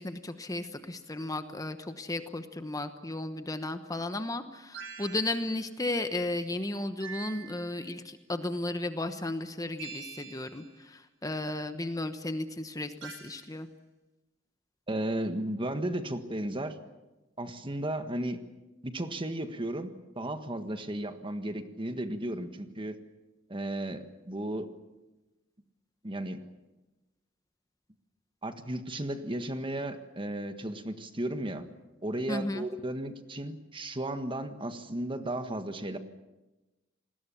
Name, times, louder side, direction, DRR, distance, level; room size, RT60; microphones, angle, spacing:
voice 1, 0.0-10.6 10.9-13.7 32.3-32.6, left 2 dB, 20° left, 9 dB, 1.1 m, -34 dB
sound 1, 4.7-5.7 7.0-7.9 9.8-10.7 13.0-13.6, right 6 dB, 80° right, 4.4 m, -45 dB
voice 2, 14.9-16.8 17.4-18.4 18.8-23.0 23.5-24.7 26.0-26.4 28.4-31.7 32.0-36.0, right 1 dB, 25° right, 8 dB, 1.6 m, -34 dB
28.0 x 20.5 x 7.1 m, 1.1 s
head